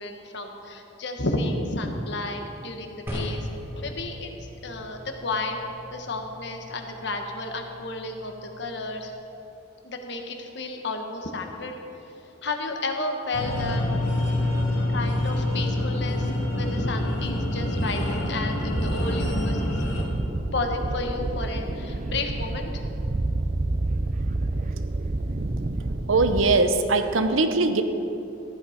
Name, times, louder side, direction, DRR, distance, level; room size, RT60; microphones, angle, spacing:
voice 1, 0.0-3.5 3.8-5.6 5.9-9.1 9.8-11.7 12.4-13.8 14.9-19.8 20.5-22.8, left 2 dB, 60° left, 4 dB, 1.4 m, -32 dB
sound 1, 3.1-9.2, equal, 10° right, 1.8 m, -39 dB
sound 2, 13.3-20.0, left 1 dB, 80° left, 2.0 m, -26 dB
sound 3, 18.7-26.6, right 2 dB, 40° right, 0.5 m, -29 dB
voice 2, 26.1-27.8, right 3 dB, 90° right, 8 dB, 0.9 m, -21 dB
14.5 x 11.0 x 5.1 m, 3.0 s
head